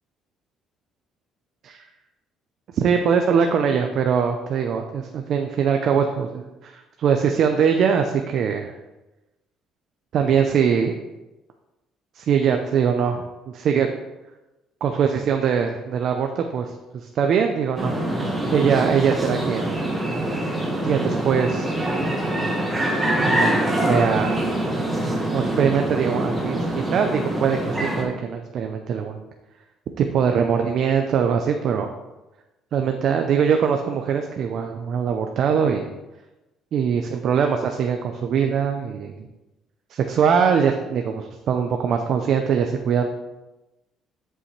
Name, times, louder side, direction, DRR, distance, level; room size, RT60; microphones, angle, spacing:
voice 1, 2.7-8.7 10.1-10.9 12.1-13.9 14.8-18.0 18.5-19.7 20.8-21.7 23.2-24.5 25.3-29.2 30.0-31.9 32.7-35.9 36.7-39.2 39.9-43.1, right 7 dB, 55° right, 4 dB, 0.6 m, -22 dB
sound 1, 17.8-28.0, right 1 dB, 15° right, 1.5 m, -24 dB
10.0 x 5.5 x 3.2 m, 1.0 s
cardioid pair, 135°, 0 cm